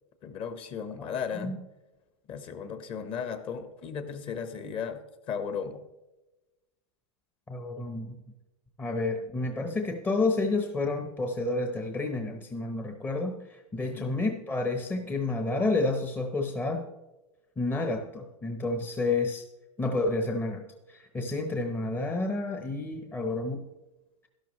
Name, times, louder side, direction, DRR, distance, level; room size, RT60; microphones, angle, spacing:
voice 1, 0.2-1.5 2.3-5.0 5.3-5.8 13.8-14.2, left 6 dB, 35° left, 10 dB, 1.2 m, -35 dB
voice 2, 7.5-8.2 8.8-16.9 17.6-19.5 19.8-20.6 20.9-23.6, left 2 dB, 10° left, 4 dB, 0.8 m, -30 dB
12.0 x 11.5 x 3.1 m, 1.1 s
supercardioid pair, 140°, 16 cm